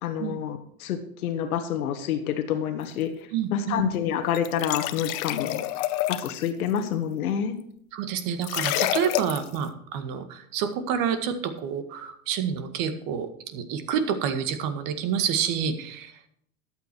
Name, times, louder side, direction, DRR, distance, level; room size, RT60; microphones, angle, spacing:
voice 1, 0.0-5.6 6.1-7.5, left 8 dB, 75° left, 7 dB, 1.6 m, -28 dB
voice 2, 3.3-3.8 7.9-16.2, right 8 dB, 50° right, 9 dB, 1.9 m, -28 dB
sound 1, 4.3-6.5 8.4-9.6, left 15 dB, 45° left, 0.8 m, -28 dB
13.0 x 9.2 x 4.6 m, 0.65 s
hypercardioid pair, 110°, 44 cm